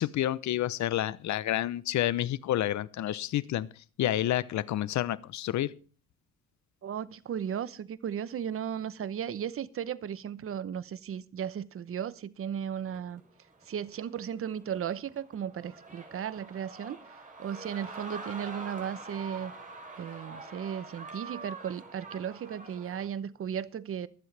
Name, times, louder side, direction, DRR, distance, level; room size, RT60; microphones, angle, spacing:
voice 1, 0.0-3.7 4.0-5.7, left 13 dB, 65° left, 0.7 m, -29 dB
voice 2, 6.8-13.2 13.7-17.0 17.4-19.5 20.0-24.1, right 8 dB, 45° right, 0.8 m, -35 dB
sound 1, 12.8-23.1, right 3 dB, 25° right, 3.6 m, -45 dB
23.5 x 7.8 x 3.3 m
cardioid pair, 100°, 30 cm